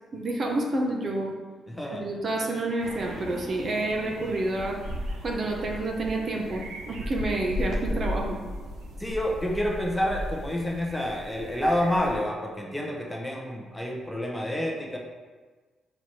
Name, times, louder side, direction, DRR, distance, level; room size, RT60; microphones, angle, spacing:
voice 1, 0.1-1.3 1.9-4.8 5.2-8.4, right 2 dB, 45° right, 0 dB, 0.9 m, -29 dB
voice 2, 1.7-2.0 9.0-15.0, left 1 dB, 5° left, -1 dB, 0.9 m, -28 dB
sound 1, 2.8-12.2, equal, 85° right, 0.9 m, -36 dB
4.6 x 4.3 x 4.7 m, 1.4 s
cardioid pair, 125°, 0 cm